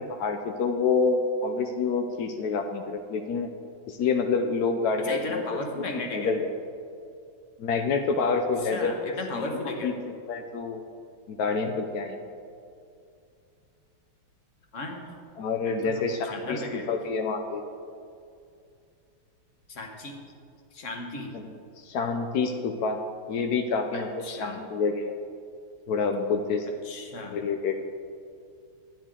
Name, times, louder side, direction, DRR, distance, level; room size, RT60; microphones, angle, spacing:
voice 1, 0.0-3.5 3.9-5.6 6.1-6.5 7.6-9.5 9.8-9.9 10.3-10.8 11.3-12.2 15.4-17.6 21.3-21.4 21.8-23.0 23.3-25.2 25.9-26.7 27.3-27.8, left 4 dB, 80° left, 5 dB, 0.8 m, -27 dB
voice 2, 5.0-6.3 8.7-9.9 14.7-15.0 15.6-16.9 19.7-20.2 20.7-21.3 23.9-24.6 26.8-27.5, left 2 dB, 45° left, 2 dB, 1.3 m, -36 dB
12.0 x 9.9 x 3.7 m, 2.4 s
omnidirectional pair, 2.3 m